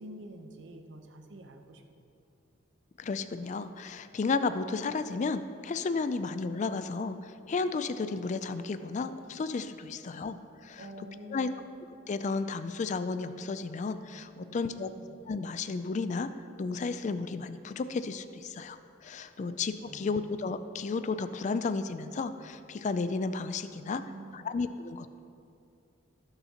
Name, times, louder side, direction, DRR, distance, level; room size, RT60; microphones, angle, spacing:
voice 1, 0.0-1.8 10.8-11.7 14.4-15.2 19.3-19.6 19.9-20.3 23.8-24.5, right 1 dB, 65° right, 5 dB, 0.8 m, -47 dB
voice 2, 3.0-10.4 10.6-10.9 11.3-11.5 12.1-14.9 15.3-16.3 16.6-24.0 24.3-25.2, left 4 dB, 40° left, 11 dB, 0.3 m, -33 dB
18.0 x 6.9 x 2.9 m, 2.6 s
head